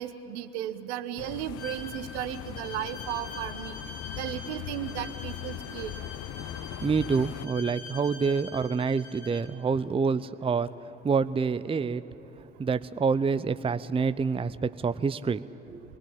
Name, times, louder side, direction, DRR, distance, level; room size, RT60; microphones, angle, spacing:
voice 1, 0.0-3.8 4.2-5.9, right 11 dB, 70° right, 11 dB, 1.2 m, -35 dB
sound 1, 1.2-7.5, left 12 dB, 45° left, 0.8 m, -40 dB
Bowed string instrument, 1.6-9.5, left 4 dB, 70° left, 3.7 m, -44 dB
voice 2, 6.8-10.7 11.0-12.0 12.6-15.8, right 5 dB, 15° right, 13 dB, 0.7 m, -27 dB
27.5 x 21.0 x 8.8 m, 2.8 s
figure-of-eight pair, 55°, 35 cm